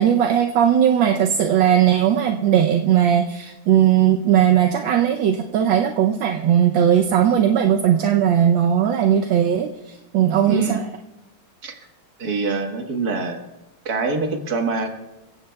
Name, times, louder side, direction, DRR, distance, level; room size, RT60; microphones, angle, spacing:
voice 1, 0.0-10.8, right 9 dB, 75° right, 3 dB, 1.5 m, -18 dB
voice 2, 10.5-10.8 11.6-11.7 12.2-13.4 13.9-14.9, right 4 dB, 50° right, 3 dB, 2.0 m, -24 dB
27.5 x 16.0 x 2.3 m, 1.0 s
omnidirectional pair, 2.2 m